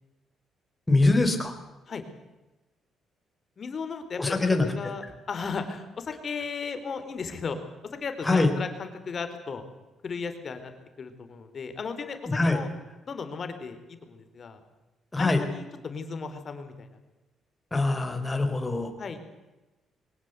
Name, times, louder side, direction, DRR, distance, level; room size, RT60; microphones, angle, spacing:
voice 1, 0.9-1.5 4.2-4.7 8.2-8.5 12.3-12.6 15.1-15.4 17.7-18.9, left 2 dB, 15° left, 5 dB, 4.2 m, -23 dB
voice 2, 3.6-7.6 8.0-9.6 10.0-10.7 11.0-12.7 13.1-13.8 14.1-14.6 15.2-16.9 19.0-19.2, left 5 dB, 45° left, 8 dB, 3.7 m, -35 dB
22.5 x 18.5 x 8.1 m, 1.1 s
cardioid pair, 90°, 0 cm